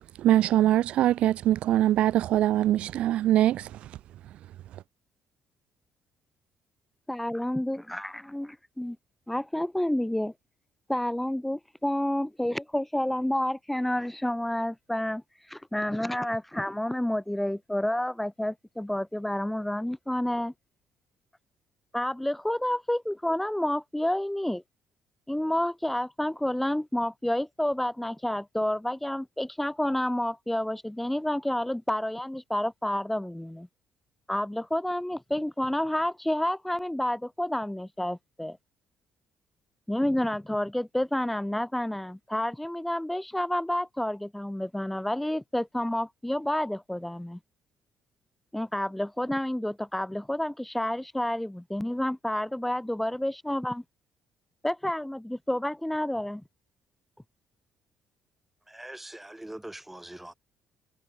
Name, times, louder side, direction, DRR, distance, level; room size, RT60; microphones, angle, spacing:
voice 1, 0.2-3.9, right 13 dB, 70° right, 0.9 m, -23 dB
voice 2, 7.1-9.0 9.3-10.3 10.9-15.2 15.5-20.5 21.9-24.6 25.3-33.7 34.3-38.6 39.9-47.4 48.5-53.8 54.6-56.4, left 1 dB, 5° left, 2.8 m, -29 dB
voice 3, 58.7-60.3, right 1 dB, 10° right, 5.6 m, -42 dB
supercardioid pair, 65°, 2 cm